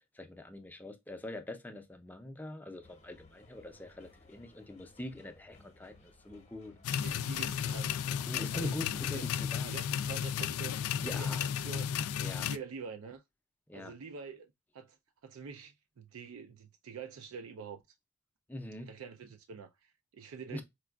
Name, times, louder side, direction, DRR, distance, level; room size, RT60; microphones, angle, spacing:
voice 1, 0.1-6.8 8.3-9.7 10.9-11.4 12.2-12.5 13.7-13.9 18.5-18.9 20.5-20.6, left 1 dB, 10° left, 0.5 m, -43 dB
sound 1, 2.8-11.3, left 2 dB, 30° left, 0.8 m, -60 dB
sound 2, 6.8-12.6, left 8 dB, 80° left, 0.3 m, -34 dB
voice 2, 7.0-8.0 8.5-9.3 9.6-10.8 11.2-11.9 12.2-13.2 13.7-14.5 14.7-15.0 15.2-17.8 18.8-20.6, right 5 dB, 70° right, 0.4 m, -46 dB
4.5 x 2.3 x 2.2 m
head